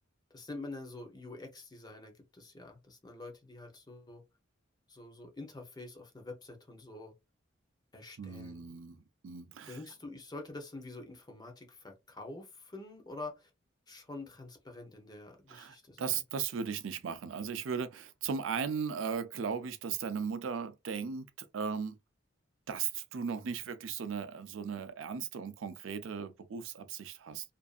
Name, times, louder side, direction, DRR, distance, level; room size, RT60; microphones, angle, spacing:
voice 1, 0.3-4.2 4.9-7.1 7.9-8.7 9.7-13.5 13.9-16.2, left 2 dB, 20° left, 0.7 m, -46 dB
voice 2, 8.2-9.8 15.5-21.9 22.7-27.5, right 6 dB, 80° right, 0.4 m, -37 dB
2.5 x 2.4 x 2.4 m
head